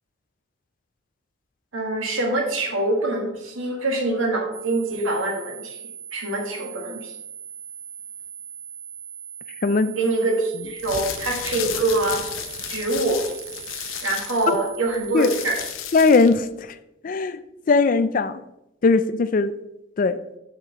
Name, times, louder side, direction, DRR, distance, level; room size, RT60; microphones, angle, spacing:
voice 1, 1.7-5.8 6.1-7.1 10.0-12.2 12.7-13.2 14.0-15.6, right 2 dB, 85° right, 1 dB, 1.7 m, -24 dB
sound 1, 4.5-15.7, right 7 dB, 45° right, 0.9 m, -40 dB
voice 2, 9.6-9.9 15.1-15.3 15.9-16.5 17.0-17.4 17.7-18.4 18.8-19.5 20.0-20.2, left 4 dB, 45° left, 13 dB, 0.3 m, -18 dB
sound 2, 10.7-16.4, left 9 dB, 80° left, 0.7 m, -33 dB
7.0 x 6.5 x 3.0 m, 0.89 s
head